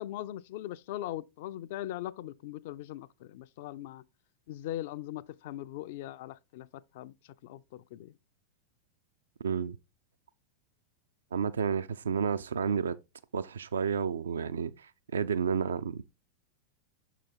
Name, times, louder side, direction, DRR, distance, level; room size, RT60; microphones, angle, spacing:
voice 1, 0.0-4.0 4.5-7.1 7.4-8.1, left 13 dB, 50° left, 0.3 m, -40 dB
voice 2, 9.4-9.8 11.3-13.0 13.3-16.0, right 6 dB, 65° right, 0.3 m, -31 dB
6.5 x 4.1 x 3.7 m
figure-of-eight pair, 90°, 0 cm